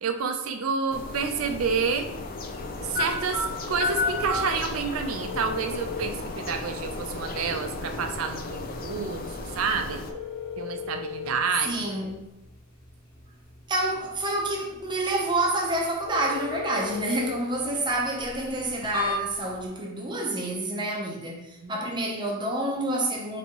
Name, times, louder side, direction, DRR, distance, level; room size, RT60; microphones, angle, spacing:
voice 1, 0.0-2.1 2.8-10.0 10.6-11.8 21.6-21.8, right 5 dB, 80° right, 0.5 m, -29 dB
sound 1, 0.9-10.1, left 3 dB, 45° left, 0.4 m, -36 dB
sound 2, 2.9-19.7, left 3 dB, 85° left, 1.4 m, -36 dB
voice 2, 11.7-12.2 13.7-23.4, right 1 dB, 20° right, 0.7 m, -28 dB
4.1 x 3.5 x 2.9 m
head